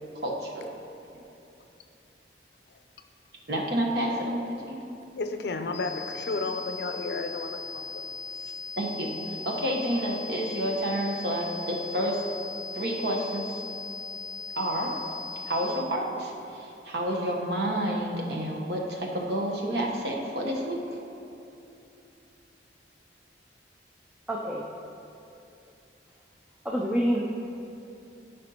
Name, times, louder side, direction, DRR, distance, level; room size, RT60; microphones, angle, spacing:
voice 1, 0.2-0.6 3.5-4.9 8.8-12.2 12.7-13.6 14.6-14.9 15.5-20.8, right 1 dB, 70° right, -1 dB, 1.0 m, -29 dB
voice 2, 5.2-8.0 8.5-8.6, left 3 dB, 70° left, 7 dB, 0.5 m, -33 dB
sound 1, 5.7-15.7, left 4 dB, 35° left, 1.8 m, -39 dB
voice 3, 24.3-24.7 26.6-27.2, equal, 5° right, -3 dB, 0.4 m, -26 dB
12.0 x 5.1 x 2.8 m, 2.8 s
head